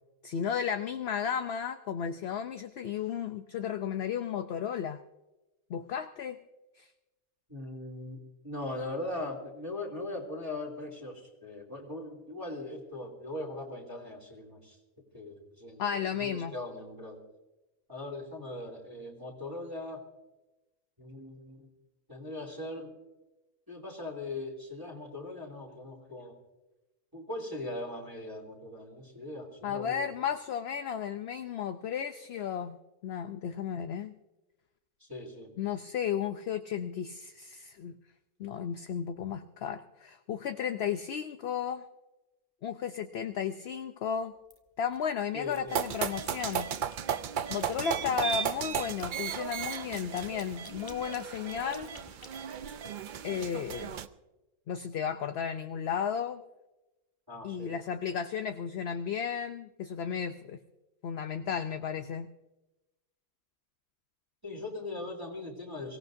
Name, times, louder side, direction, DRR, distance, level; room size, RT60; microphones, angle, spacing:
voice 1, 0.2-5.0 5.7-6.4 6.8-6.9 15.8-16.5 29.6-32.8 33.0-34.1 35.6-38.0 38.4-41.8 42.6-44.3 44.8-46.7 47.5-52.0 53.2-54.0 54.7-56.4 57.4-60.6 61.0-62.3, left 8 dB, 60° left, 8 dB, 0.8 m, -34 dB
voice 2, 7.5-14.8 15.1-17.2 17.9-20.0 21.0-21.7 22.1-22.9 23.7-26.4 27.1-30.0 35.0-35.5 45.3-45.8 57.3-57.7 64.4-66.0, left 2 dB, 15° right, -3 dB, 2.9 m, -40 dB
sound 1, 44.5-45.0 45.4-47.0 47.4-53.2, left 1 dB, 15° left, 1.3 m, -53 dB
sound 2, 45.7-54.1, right 8 dB, 60° right, 0.5 m, -35 dB
23.5 x 17.0 x 2.6 m, 1.0 s
omnidirectional pair, 1.4 m